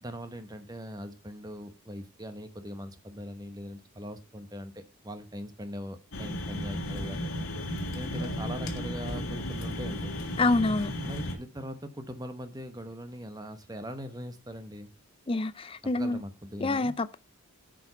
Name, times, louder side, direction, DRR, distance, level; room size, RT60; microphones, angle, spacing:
voice 1, 0.0-7.4 7.9-10.1 11.0-14.9 15.9-16.9, equal, 15° right, 1.0 m, -41 dB
sound 1, 6.1-11.4, left 1 dB, 65° left, 1.8 m, -34 dB
voice 2, 10.4-10.9 15.3-16.2 16.6-17.2, left 2 dB, 25° left, 0.5 m, -26 dB
7.8 x 5.2 x 5.6 m
head